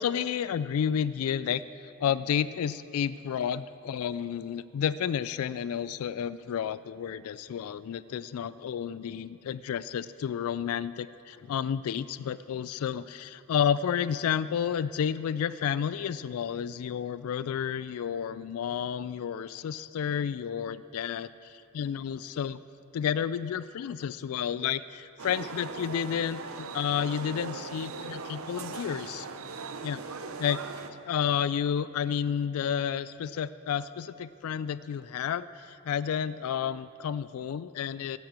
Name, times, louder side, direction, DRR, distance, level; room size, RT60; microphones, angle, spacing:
voice 1, 0.0-22.6 22.9-29.3 29.8-30.0 30.4-30.6 31.0-38.2, left 8 dB, 75° left, 16 dB, 0.3 m, -31 dB
sound 1, 25.2-30.9, right 4 dB, 70° right, 0.7 m, -39 dB
15.0 x 7.6 x 7.4 m, 2.7 s
head